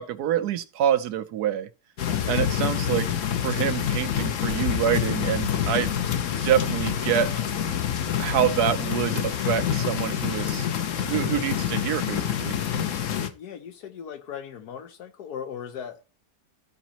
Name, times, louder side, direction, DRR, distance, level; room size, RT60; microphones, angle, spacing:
voice 1, 0.0-1.7 2.3-3.1 3.4-5.9 6.4-7.3 8.2-10.7 11.0-12.6, right 10 dB, 80° right, 1.3 m, -26 dB
voice 2, 2.0-2.4 10.6-11.6 13.3-16.2, left 8 dB, 80° left, 1.5 m, -39 dB
sound 1, 2.0-13.3, left 9 dB, 60° left, 1.0 m, -27 dB
14.0 x 5.1 x 2.9 m
omnidirectional pair, 1.7 m